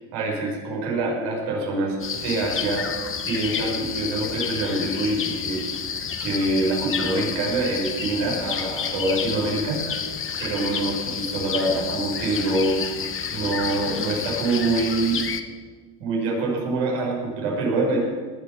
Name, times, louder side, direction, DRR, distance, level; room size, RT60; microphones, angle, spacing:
voice 1, 0.1-2.9 3.2-5.6 6.2-9.8 10.4-12.8 13.3-15.3 16.0-18.0, right 2 dB, 70° right, -2 dB, 6.3 m, -25 dB
sound 1, 2.0-15.4, left 7 dB, 25° left, 1.1 m, -30 dB
19.5 x 7.4 x 8.8 m, 1.5 s
cardioid pair, 130°, 49 cm